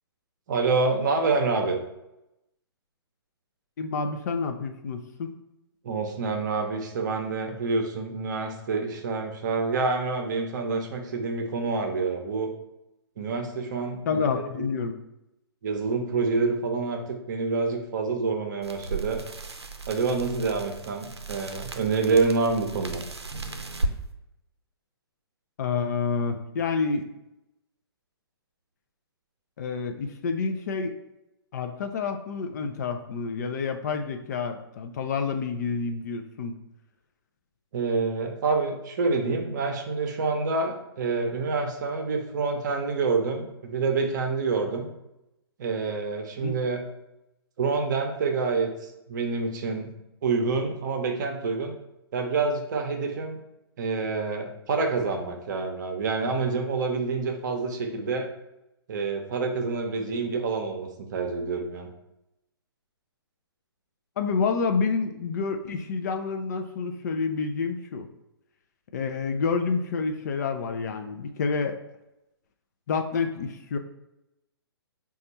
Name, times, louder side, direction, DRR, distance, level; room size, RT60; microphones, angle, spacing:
voice 1, 0.5-1.8 5.8-12.5 13.2-14.7 15.6-19.2 19.9-23.0 37.7-44.9 45.6-46.8 47.6-49.9 50.2-51.7 52.1-53.4 53.8-58.3 58.9-61.9, right 4 dB, 45° right, 4 dB, 0.7 m, -27 dB
voice 2, 3.8-5.3 14.1-14.9 25.6-27.1 29.6-30.9 31.5-36.6 46.4-46.6 64.2-68.1 68.9-71.8 72.9-73.8, left 5 dB, 40° left, 6 dB, 0.4 m, -28 dB
sound 1, 18.6-24.0, right 2 dB, 85° right, 0.5 m, -35 dB
4.2 x 2.4 x 4.0 m, 0.89 s
figure-of-eight pair, 125°, 14 cm